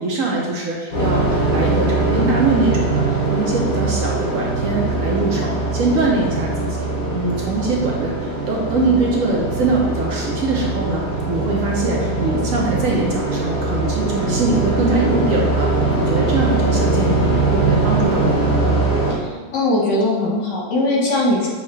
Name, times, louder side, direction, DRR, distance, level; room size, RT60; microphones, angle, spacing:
voice 1, 0.0-6.9 7.1-18.8, right 3 dB, 65° right, -2 dB, 0.9 m, -22 dB
sound 1, 0.9-19.1, right 2 dB, 70° left, 1.9 m, -21 dB
voice 2, 19.2-21.5, left 1 dB, 85° left, -3 dB, 1.7 m, -20 dB
6.4 x 2.3 x 3.1 m, 1.5 s
omnidirectional pair, 1.8 m